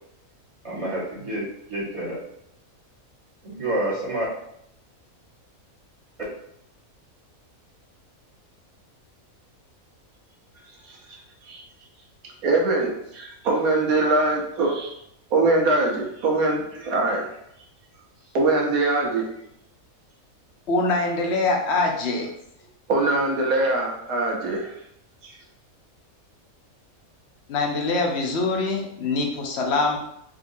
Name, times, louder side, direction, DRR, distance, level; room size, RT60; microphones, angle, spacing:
voice 1, 0.6-2.2 3.4-4.2, right 1 dB, 25° right, -7 dB, 1.2 m, -28 dB
voice 2, 10.8-11.6 12.4-14.9 15.3-17.4 18.3-19.3 22.9-24.8 25.2-25.4, right 2 dB, 80° right, 0 dB, 1.3 m, -23 dB
voice 3, 20.7-22.3 27.5-30.0, left 3 dB, 60° left, 1 dB, 0.8 m, -24 dB
3.7 x 2.7 x 2.6 m, 0.76 s
omnidirectional pair, 1.5 m